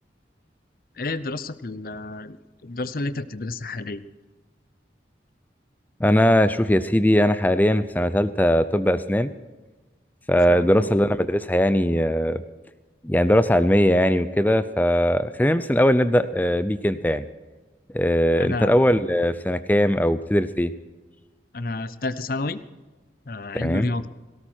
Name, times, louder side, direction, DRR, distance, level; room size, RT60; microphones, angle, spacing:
voice 1, 1.0-2.4 2.6-4.0 10.5-10.9 18.4-18.8 21.5-22.6 23.3-24.0, left 2 dB, 50° left, 14 dB, 0.7 m, -30 dB
voice 2, 6.0-9.3 10.3-12.4 13.0-17.3 17.9-20.7 23.5-23.9, equal, 10° left, 13 dB, 0.5 m, -20 dB
17.5 x 17.5 x 4.5 m, 1.3 s
head